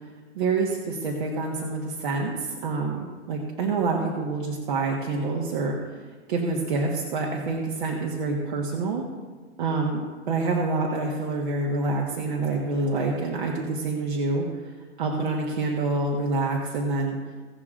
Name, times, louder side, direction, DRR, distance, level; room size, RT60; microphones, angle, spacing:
voice 1, 0.3-5.8 6.3-9.0 9.6-14.7 15.0-17.2, right 3 dB, 45° right, -2 dB, 1.5 m, -27 dB
17.0 x 6.7 x 3.7 m, 1.4 s
hypercardioid pair, 170°, 35 cm